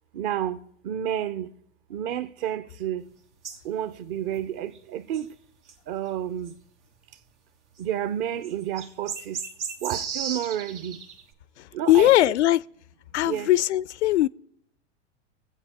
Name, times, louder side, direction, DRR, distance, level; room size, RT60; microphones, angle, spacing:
voice 1, 0.1-1.5 1.9-3.1 3.6-5.3 5.9-6.5 7.8-9.4 9.8-11.0 11.7-12.1 13.2-13.5, right 10 dB, 50° right, 0.9 m, -30 dB
sound 1, 3.4-3.6 4.1-4.4 4.7-4.8 5.1-5.2 5.7-5.8 6.5-6.6 7.8-7.9 8.4-11.2, right 6 dB, 85° right, 1.5 m, -35 dB
voice 2, 11.9-12.6 13.1-14.3, left 15 dB, 80° left, 0.5 m, -19 dB
24.0 x 8.1 x 3.0 m
hypercardioid pair, 110°, 34 cm